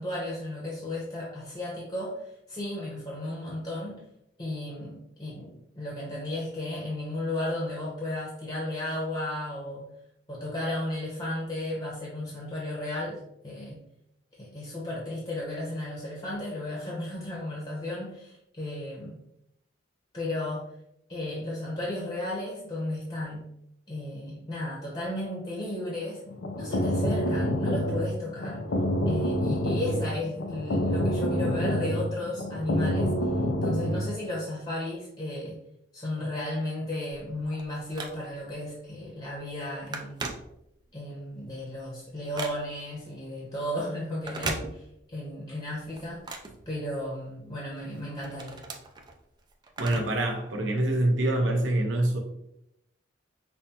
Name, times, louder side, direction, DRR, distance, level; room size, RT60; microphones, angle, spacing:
voice 1, 0.0-3.9 4.4-9.9 10.3-13.8 14.4-19.2 20.1-20.6 21.1-23.5 23.9-26.2 26.5-28.6 29.1-33.1 33.6-35.6 35.9-40.3 40.9-46.4 46.7-48.6, left 1 dB, 25° left, -5 dB, 0.9 m, -34 dB
sound 1, 26.3-34.1, equal, 65° left, 0.5 m, -27 dB
Telephone, 37.1-38.6 39.0-39.2 39.5-41.0 41.4-43.0 44.1-45.2 45.6-47.3 47.8-50.3 50.6-50.7 51.6-51.7, right 3 dB, 25° right, 0.4 m, -39 dB
voice 2, 49.8-52.2, right 1 dB, 80° right, 1 dB, 0.8 m, -25 dB
5.6 x 2.2 x 2.8 m, 0.81 s
head